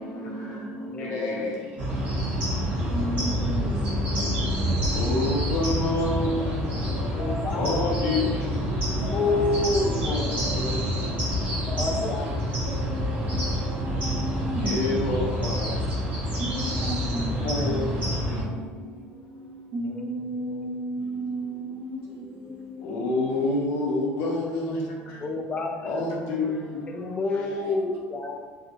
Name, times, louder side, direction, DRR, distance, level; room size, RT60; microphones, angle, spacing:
voice 1, 0.0-2.1 2.9-4.9 6.8-8.2 9.0-9.5 9.8-10.9 11.2-11.3 11.7-12.4 12.6-15.5 16.4-18.8 19.7-23.1 26.5-27.0 27.6-27.7, right 1 dB, 65° right, -2 dB, 0.8 m, -36 dB
voice 2, 0.9-1.4 7.0-7.6 8.9-10.2 11.7-12.3 19.9-20.7 22.1-22.6 25.2-26.1 26.9-28.4, left 2 dB, 25° left, 3 dB, 0.3 m, -29 dB
sound 1, 1.8-18.4, equal, 45° right, 1.4 m, -27 dB
voice 3, 4.9-6.5 7.6-8.2 10.0-10.2 10.6-10.8 14.6-15.7 17.4-17.8 22.8-24.7 25.9-26.6, left 2 dB, 75° left, -3 dB, 0.9 m, -27 dB
3.5 x 2.4 x 2.8 m, 1.4 s
cardioid pair, 135°, 4 cm